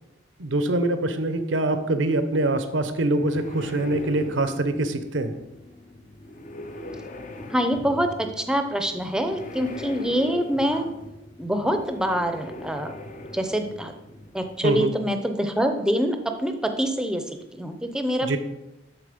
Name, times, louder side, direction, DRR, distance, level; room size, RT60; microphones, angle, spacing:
voice 1, 0.4-5.3 14.6-14.9 18.2-18.4, right 2 dB, 85° right, 10 dB, 0.8 m, -24 dB
sound 1, 2.8-14.6, left 1 dB, 40° left, 0.7 m, -40 dB
voice 2, 7.5-10.8 11.4-13.0 13.3-13.9 14.3-17.2 17.5-18.4, equal, 5° right, 6 dB, 0.6 m, -25 dB
12.0 x 4.1 x 5.1 m, 0.98 s
head